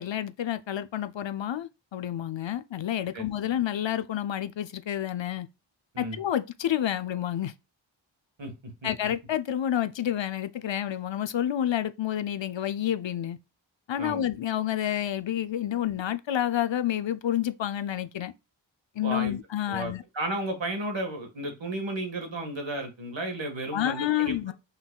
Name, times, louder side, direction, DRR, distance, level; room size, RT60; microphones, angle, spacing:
voice 1, 0.0-5.5 6.0-7.5 8.8-13.4 13.9-18.3 19.0-20.0 23.7-24.5, left 11 dB, 70° left, 0.6 m, -29 dB
voice 2, 8.4-8.9 14.0-14.2 19.0-19.3 19.7-24.5, right 1 dB, 70° right, 1.7 m, -33 dB
5.6 x 3.9 x 2.3 m
wide cardioid pair, 75°, 47 cm